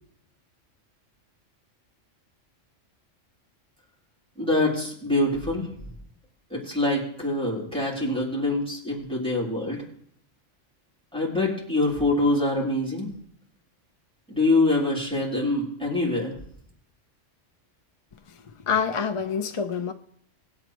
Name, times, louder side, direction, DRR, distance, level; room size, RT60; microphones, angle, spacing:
voice 1, 4.4-5.7 6.5-9.8 11.1-13.1 14.3-16.3, left 2 dB, 5° left, 3.0 m, -25 dB
voice 2, 18.7-19.9, left 6 dB, 40° left, 0.4 m, -26 dB
20.0 x 7.9 x 3.1 m
omnidirectional pair, 1.3 m